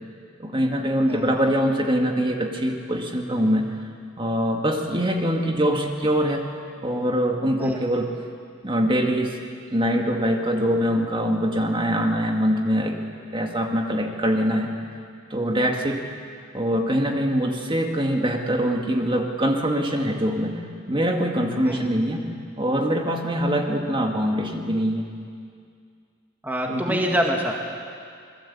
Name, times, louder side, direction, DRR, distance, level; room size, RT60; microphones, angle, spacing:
voice 1, 0.4-3.7 4.2-6.5 6.8-8.1 8.6-9.4 9.7-13.0 13.3-14.7 15.3-16.1 16.5-20.6 20.9-22.3 22.6-25.1 26.7-27.0, equal, 25° right, 2 dB, 2.1 m, -23 dB
voice 2, 26.4-27.5, equal, 10° right, 0 dB, 1.9 m, -25 dB
27.5 x 22.0 x 8.6 m, 2.2 s
head